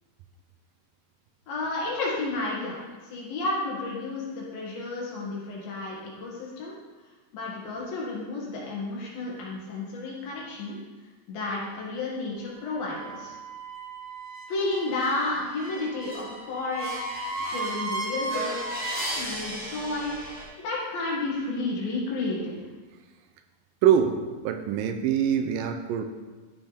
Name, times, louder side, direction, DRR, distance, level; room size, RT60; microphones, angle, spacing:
voice 1, 1.5-6.7 7.3-10.8 11.3-13.4 14.5-18.6 19.2-20.2 20.6-22.6, left 2 dB, 80° left, -4 dB, 3.7 m, -32 dB
sound 1, 12.7-20.4, right 2 dB, 5° right, 2.0 m, -35 dB
voice 2, 23.8-26.0, right 9 dB, 80° right, 6 dB, 2.2 m, -24 dB
13.5 x 5.8 x 3.4 m, 1.3 s
omnidirectional pair, 4.1 m